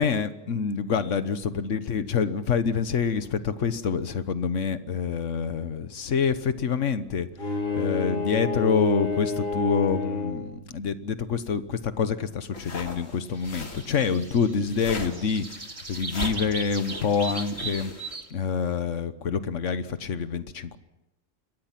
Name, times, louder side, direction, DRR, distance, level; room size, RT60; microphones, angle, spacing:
voice 1, 0.0-7.3 7.7-15.5 15.9-17.9 18.3-20.8, left 6 dB, 70° left, 12 dB, 1.4 m, -26 dB
Bowed string instrument, 7.4-10.6, left 3 dB, 45° left, 4.9 m, -29 dB
sound 1, 12.5-18.2, left 3 dB, 90° left, 2.9 m, -39 dB
sound 2, 13.3-18.3, right 3 dB, 25° right, 1.4 m, -38 dB
27.5 x 22.0 x 6.0 m, 0.99 s
omnidirectional pair, 1.3 m